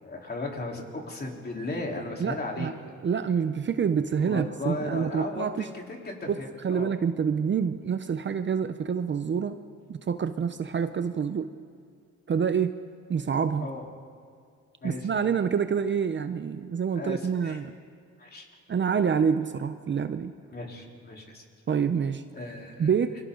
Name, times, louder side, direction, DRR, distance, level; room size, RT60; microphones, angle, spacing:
voice 1, 0.0-2.7 4.2-6.9 13.6-13.8 14.8-15.1 17.0-17.6 18.2-18.5 20.5-21.4 22.3-22.9, left 2 dB, 30° left, -1 dB, 3.9 m, -36 dB
voice 2, 2.2-2.7 3.0-5.7 6.3-6.4 6.6-9.6 9.9-11.5 12.3-12.7 13.1-13.7 14.8-17.7 18.7-20.3 21.7-22.2 22.8-23.2, right 6 dB, 40° right, 10 dB, 0.8 m, -27 dB
28.5 x 23.5 x 4.0 m, 2.3 s
cardioid pair, 90°, 30 cm